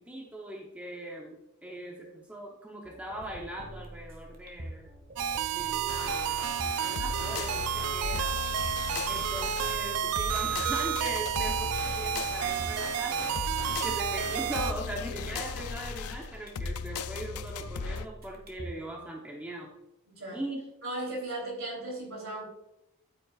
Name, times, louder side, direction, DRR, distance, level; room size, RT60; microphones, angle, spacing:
voice 1, 0.1-4.9 5.5-6.4 6.8-8.3 9.1-13.3 13.7-19.7 20.3-20.6, right 1 dB, 5° right, -2 dB, 0.8 m, -40 dB
sound 1, 2.8-18.8, right 1 dB, 45° right, 1.4 m, -45 dB
sound 2, 5.2-14.7, right 9 dB, 85° right, 0.3 m, -31 dB
sound 3, 5.9-18.1, left 5 dB, 85° left, 0.4 m, -37 dB
voice 2, 20.8-22.4, right 1 dB, 60° right, -1 dB, 3.4 m, -36 dB
9.7 x 8.8 x 2.4 m, 0.88 s
head